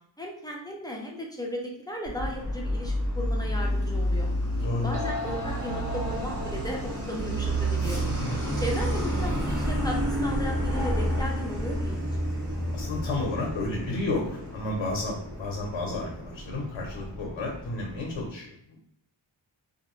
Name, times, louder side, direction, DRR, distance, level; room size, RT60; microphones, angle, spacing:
voice 1, 0.2-4.3 4.8-8.0 8.6-12.0, equal, 10° left, -2 dB, 0.6 m, -35 dB
Truck, 2.0-18.3, equal, 55° right, 1.2 m, -30 dB
sound 1, 3.8-3.9 4.6-4.7 4.9-7.4, left 2 dB, 30° right, 1.2 m, -37 dB
voice 2, 4.6-4.9 8.0-8.4 12.7-18.8, left 2 dB, 75° left, -1 dB, 0.8 m, -32 dB
2.6 x 2.5 x 3.0 m, 0.71 s
wide cardioid pair, 105°, 47 cm